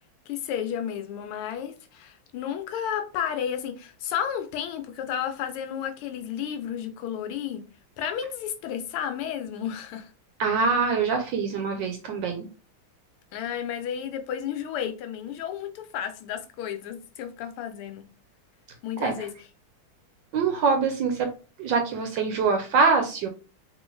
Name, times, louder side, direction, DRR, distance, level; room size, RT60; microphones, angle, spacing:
voice 1, 0.3-7.7 8.0-10.1 13.3-18.1 18.8-19.3, left 9 dB, 80° left, 1.5 m, -32 dB
voice 2, 10.4-12.5 19.0-19.1 20.3-21.3 21.6-23.3, right 4 dB, 75° right, 1.1 m, -24 dB
3.8 x 3.1 x 3.1 m
omnidirectional pair, 2.4 m